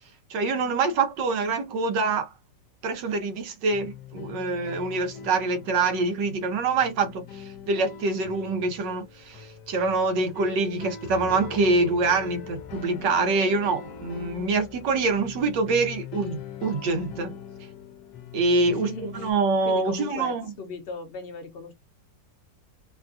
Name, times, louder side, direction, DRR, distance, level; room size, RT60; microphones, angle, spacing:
voice 1, 0.3-2.3 2.8-17.3 18.3-20.5, right 3 dB, 80° right, 1.5 m, -25 dB
sound 1, 3.7-19.3, left 8 dB, 75° left, 1.2 m, -42 dB
voice 2, 18.7-19.3 19.6-21.7, left 3 dB, 55° left, 0.7 m, -37 dB
3.5 x 2.3 x 2.4 m
omnidirectional pair, 1.9 m